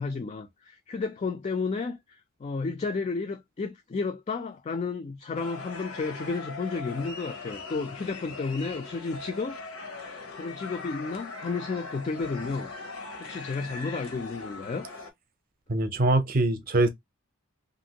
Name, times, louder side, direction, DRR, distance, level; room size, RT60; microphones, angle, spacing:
voice 1, 0.0-9.6 10.4-12.7 13.2-14.9, left 4 dB, 30° left, 0.3 m, -32 dB
sound 1, 5.4-15.1, left 3 dB, 85° left, 0.9 m, -40 dB
voice 2, 15.7-16.9, right 2 dB, 45° right, 0.6 m, -23 dB
2.9 x 2.6 x 2.8 m
head